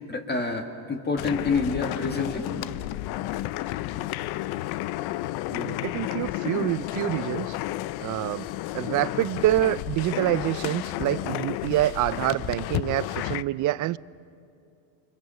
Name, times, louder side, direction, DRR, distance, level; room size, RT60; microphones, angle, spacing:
voice 1, 0.1-2.5, left 4 dB, 25° left, 4 dB, 1.9 m, -27 dB
sound 1, 1.2-13.4, left 15 dB, 65° left, 0.7 m, -32 dB
voice 2, 5.5-7.6 8.0-8.5 8.7-14.0, right 15 dB, 50° right, 19 dB, 0.5 m, -26 dB
28.5 x 25.5 x 6.9 m, 2.6 s
cardioid pair, 115°, 41 cm